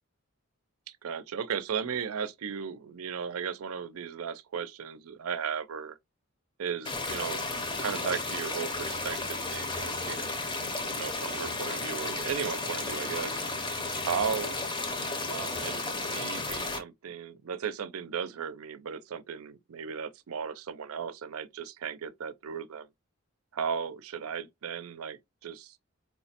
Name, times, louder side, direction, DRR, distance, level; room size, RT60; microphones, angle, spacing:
voice 1, 1.0-6.0 6.6-10.3 10.8-13.3 14.0-14.6 15.3-22.9 23.5-25.8, right 7 dB, 85° right, 0.4 m, -36 dB
sound 1, 6.8-16.8, left 2 dB, 20° left, 0.5 m, -33 dB
4.4 x 2.1 x 2.7 m
head